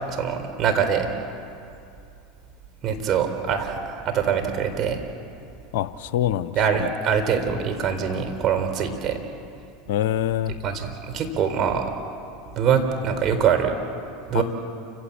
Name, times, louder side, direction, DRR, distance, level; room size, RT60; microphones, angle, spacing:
voice 1, 0.1-1.1 2.8-5.0 6.5-9.2 10.6-11.9 12.6-13.8 14.3-14.4, right 7 dB, 40° right, 5 dB, 4.2 m, -23 dB
voice 2, 5.7-6.9 9.9-10.5 14.3-14.4, left 11 dB, 70° left, 14 dB, 0.8 m, -25 dB
29.0 x 16.5 x 8.6 m, 2.5 s
hypercardioid pair, 90°, 0 cm